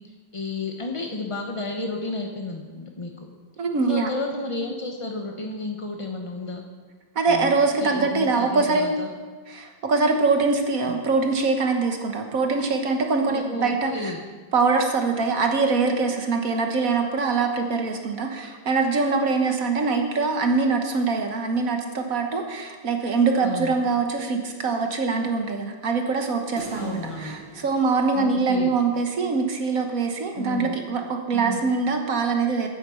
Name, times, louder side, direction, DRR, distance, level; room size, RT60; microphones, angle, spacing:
voice 1, 0.3-3.3 3.9-6.6 7.3-9.1 10.9-11.0 13.3-14.2 23.4-23.7 26.7-27.4 28.1-28.7 30.3-30.8 31.3-31.6, left 3 dB, 40° left, 2 dB, 0.4 m, -32 dB
voice 2, 3.6-4.1 7.1-8.9 9.5-14.1 14.5-32.7, right 4 dB, 50° right, 4 dB, 1.5 m, -23 dB
sound 1, 26.6-29.0, right 3 dB, 85° right, 2.2 m, -42 dB
9.5 x 9.2 x 6.9 m, 1.4 s
omnidirectional pair, 2.1 m